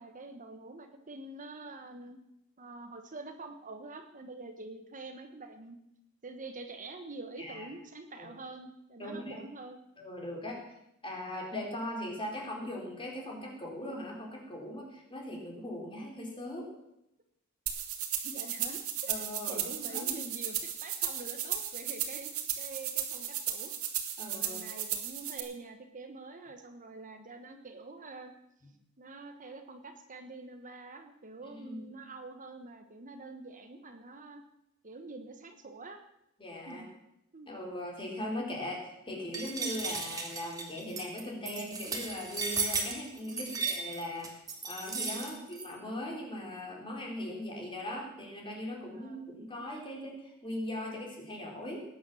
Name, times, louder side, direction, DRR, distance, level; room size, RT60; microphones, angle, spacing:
voice 1, 0.0-2.2 2.6-5.8 6.2-9.8 18.2-23.7 24.4-28.3 29.0-34.4 34.8-36.0 36.7-36.9 37.3-37.5 43.3-43.6 45.1-45.5 48.9-49.2, right 3 dB, 35° right, 6 dB, 1.2 m, -46 dB
voice 2, 9.0-9.4 10.0-10.6 11.0-16.7 19.1-19.6 19.9-20.1 24.2-24.6 31.4-31.9 36.4-36.9 37.5-44.3 44.6-51.8, left 1 dB, 25° left, 0 dB, 4.1 m, -39 dB
sound 1, 17.7-25.4, right 10 dB, 75° right, 2.3 m, -35 dB
sound 2, 39.3-45.7, right 4 dB, 15° right, 2.7 m, -35 dB
19.0 x 9.5 x 7.1 m, 0.82 s
head